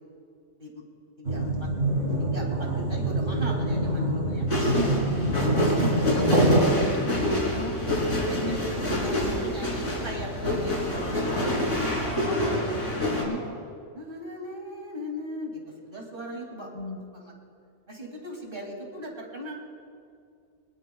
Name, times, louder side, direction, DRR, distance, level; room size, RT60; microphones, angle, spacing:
voice 1, 1.2-1.7 2.2-4.5 5.2-5.9 6.8-7.1 8.2-13.1 13.9-15.6 15.8-16.7 17.1-17.3 17.9-19.6, equal, 50° right, -1 dB, 2.7 m, -38 dB
sound 1, 1.2-6.6, right 1 dB, 85° right, 2.7 m, -25 dB
sound 2, 4.5-13.2, left 1 dB, 80° left, 3.5 m, -27 dB
voice 2, 4.7-5.3 5.6-7.8 8.4-8.6 13.2-13.4 16.7-17.0, left 1 dB, 40° left, 3 dB, 1.8 m, -34 dB
22.5 x 20.0 x 2.3 m, 2.3 s
omnidirectional pair, 1.2 m